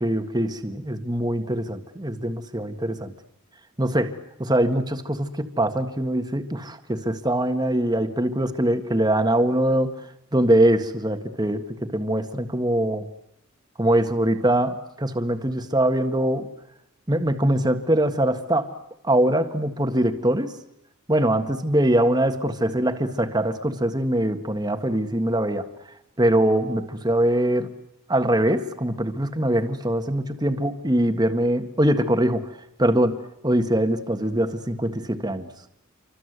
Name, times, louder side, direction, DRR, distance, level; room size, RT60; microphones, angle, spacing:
voice 1, 0.0-3.1 3.8-4.1 4.4-10.0 10.3-13.1 13.8-16.5 17.1-18.7 19.0-20.5 21.1-25.7 26.2-27.7 28.1-32.5 32.8-35.5, right 1 dB, 20° right, 8 dB, 1.7 m, -23 dB
28.0 x 25.0 x 8.1 m, 0.80 s
head